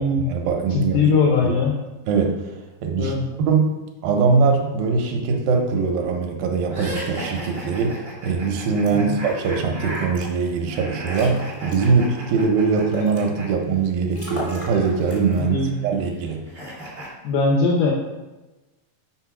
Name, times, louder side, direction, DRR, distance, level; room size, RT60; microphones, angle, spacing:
voice 1, 0.0-1.1 1.4-1.6 2.1-2.5 2.8-3.7 4.0-15.6 15.8-16.4, right 5 dB, 80° right, 3 dB, 2.3 m, -22 dB
voice 2, 0.7-1.8 3.0-3.3 8.9-9.0 15.4-15.9 17.2-17.9, left 4 dB, 80° left, 0 dB, 1.8 m, -20 dB
sound 1, 6.7-13.5 13.7-17.1, right 1 dB, 50° right, 0.7 m, -36 dB
sound 2, 8.8-8.9 9.2-9.4 9.9-10.3 10.7-10.8 11.1-11.9 12.3-13.2 13.7-13.8 14.1-14.7 15.0-15.4, equal, 30° left, 0.5 m, -34 dB
6.0 x 3.9 x 5.8 m, 1.1 s
omnidirectional pair, 4.3 m